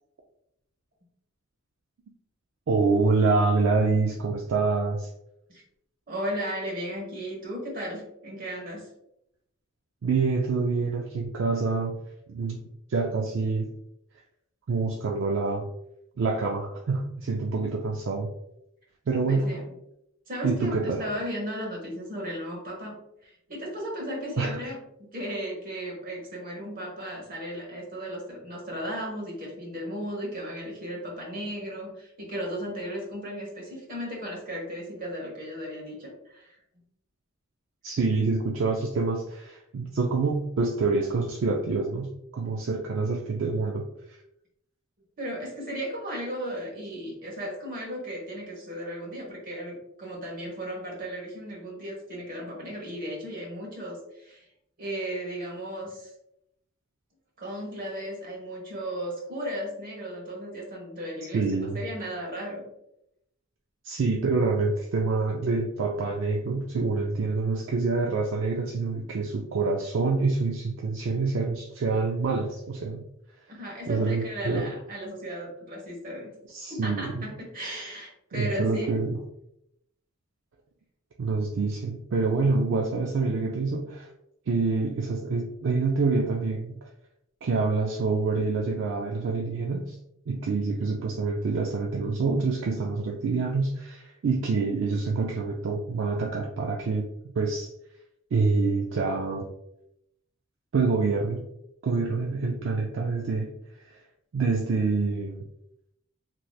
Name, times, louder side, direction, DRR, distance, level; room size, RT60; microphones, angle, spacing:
voice 1, 2.7-5.1 10.0-12.0 12.3-12.6 12.9-13.7 14.7-15.6 16.2-18.3 19.1-19.6 20.4-21.0 24.4-24.5 37.8-43.8 61.3-61.8 63.8-73.0 73.9-74.7 76.5-77.3 78.3-79.2 81.2-84.1 84.5-86.8 87.4-90.0 90.3-97.7 98.3-99.5 100.7-101.5 101.8-103.5 104.3-105.4, right 4 dB, 65° right, 0 dB, 0.4 m, -26 dB
voice 2, 6.1-8.9 19.3-19.7 20.3-36.6 45.2-54.4 54.8-56.1 57.4-62.7 73.5-76.3 76.7-78.9, equal, 45° right, -2 dB, 1.1 m, -35 dB
3.3 x 2.9 x 2.3 m, 0.80 s
head